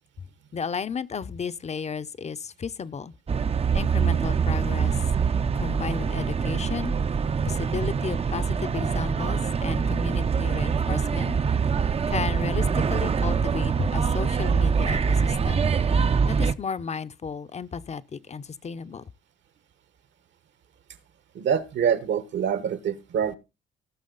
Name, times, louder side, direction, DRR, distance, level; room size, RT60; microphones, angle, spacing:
voice 1, 0.5-3.1 3.7-5.0 5.5-7.0 7.4-11.4 12.1-15.7 16.3-19.0, left 6 dB, 35° left, 0.7 m, -33 dB
sound 1, 3.3-16.5, right 6 dB, 30° right, 0.6 m, -24 dB
voice 2, 21.3-23.3, right 8 dB, 65° right, 1.3 m, -25 dB
18.0 x 6.2 x 3.9 m
cardioid pair, 90°, 20 cm